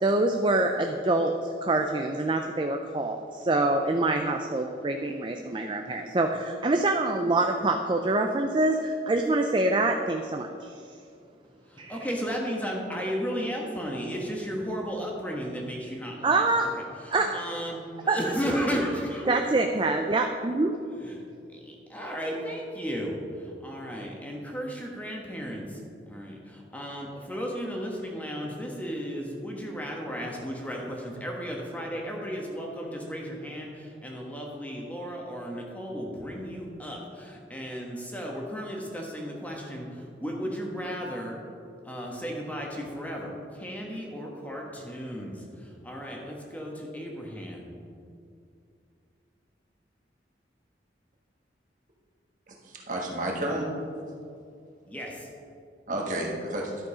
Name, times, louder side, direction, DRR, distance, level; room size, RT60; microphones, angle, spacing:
voice 1, 0.0-10.8 11.8-12.0 16.2-16.7 17.1-17.4 18.1-18.2 19.3-20.8, right 2 dB, 25° right, 4 dB, 0.4 m, -25 dB
voice 2, 11.7-16.5 16.8-19.4 21.0-21.2 21.9-25.8 26.1-41.4 41.8-47.7 54.9-55.3, equal, 10° left, -1 dB, 1.2 m, -34 dB
voice 3, 52.5-53.7 55.9-56.7, right 1 dB, 45° right, -1 dB, 1.4 m, -31 dB
11.5 x 6.4 x 4.9 m, 2.4 s
head